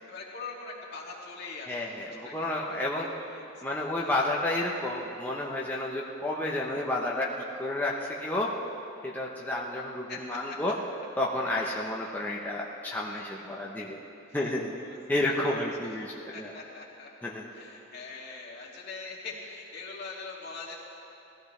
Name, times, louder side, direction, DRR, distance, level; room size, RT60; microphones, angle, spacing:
voice 1, 0.1-1.9 2.2-3.4 4.0-4.1 10.1-10.6 13.1-13.2 14.8-15.9 16.3-17.1 17.5-20.7, left 4 dB, 55° left, -4 dB, 2.5 m, -43 dB
voice 2, 1.7-3.1 3.6-7.3 7.5-8.5 9.0-10.7 11.2-14.0 14.3-14.8 15.1-16.5 17.2-17.5, left 1 dB, 10° left, -4 dB, 1.0 m, -31 dB
20.0 x 15.0 x 3.3 m, 3.0 s
head